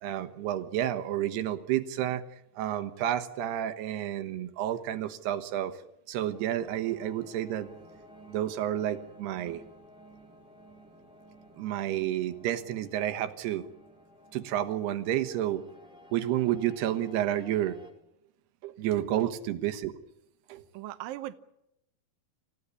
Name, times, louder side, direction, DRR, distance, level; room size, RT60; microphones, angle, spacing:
voice 1, 0.0-2.2 2.6-5.7 6.1-7.7 8.3-9.6 11.6-13.6 14.3-15.6 16.1-17.8 18.6-19.9 20.5-20.6, right 12 dB, 85° right, 3.3 m, -30 dB
sound 1, 6.3-17.9, equal, ahead, 3.7 m, -54 dB
voice 2, 20.7-21.4, right 14 dB, 70° right, 2.5 m, -38 dB
26.5 x 16.0 x 9.7 m
omnidirectional pair, 4.5 m